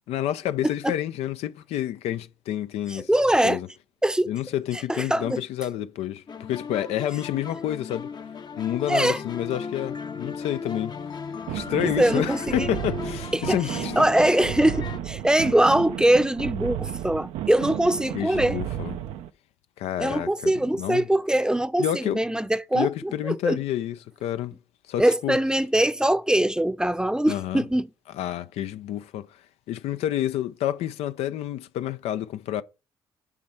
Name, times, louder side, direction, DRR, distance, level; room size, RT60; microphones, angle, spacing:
voice 1, 0.1-3.1 3.4-3.7 4.3-8.1 8.6-11.0 11.5-13.9 18.1-19.0 19.8-20.5 20.8-21.1 21.8-22.2 22.7-24.0 24.2-24.6 24.9-25.4 27.3-27.7 28.2-29.3 29.7-32.6, left 12 dB, 80° left, 0.5 m, -29 dB
voice 2, 2.9-3.6 4.0-4.3 4.9-5.4 8.9-9.2 11.8-12.7 13.3-18.6 20.0-23.6 25.0-27.9, right 1 dB, 5° right, 0.6 m, -22 dB
sound 1, 6.3-15.0, left 5 dB, 45° left, 0.7 m, -36 dB
sound 2, 11.5-19.3, right 11 dB, 85° right, 0.6 m, -33 dB
7.3 x 4.4 x 6.3 m
supercardioid pair, 65°, 10 cm